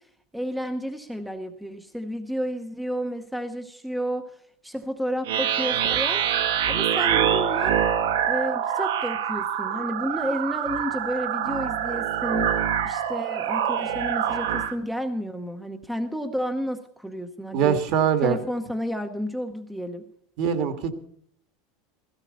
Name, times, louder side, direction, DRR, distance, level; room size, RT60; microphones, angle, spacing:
voice 1, 0.3-4.3 4.6-6.2 6.7-7.8 8.2-12.5 12.8-17.8 18.2-20.0, equal, ahead, 7 dB, 0.8 m, -31 dB
sound 1, 5.2-14.7, right 9 dB, 85° right, 1.5 m, -25 dB
voice 2, 17.5-18.4 20.4-20.9, right 7 dB, 45° right, 9 dB, 1.7 m, -22 dB
16.5 x 16.0 x 4.2 m, 0.64 s
supercardioid pair, 170°, 0 cm